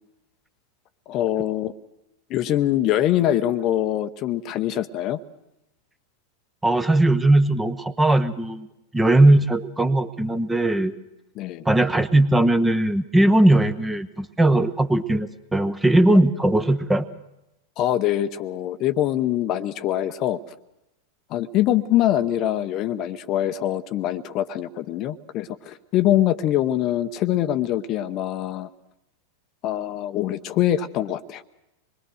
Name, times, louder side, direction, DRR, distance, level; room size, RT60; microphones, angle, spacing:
voice 1, 1.1-1.7 2.3-5.2 11.4-11.6 17.8-20.4 21.3-28.7 29.6-31.4, left 12 dB, 35° left, 11 dB, 0.8 m, -23 dB
voice 2, 6.6-8.7 8.9-11.0 11.6-17.1, right 1 dB, 10° right, 12 dB, 1.0 m, -19 dB
25.5 x 21.5 x 6.4 m, 0.90 s
figure-of-eight pair, 90°, 0 cm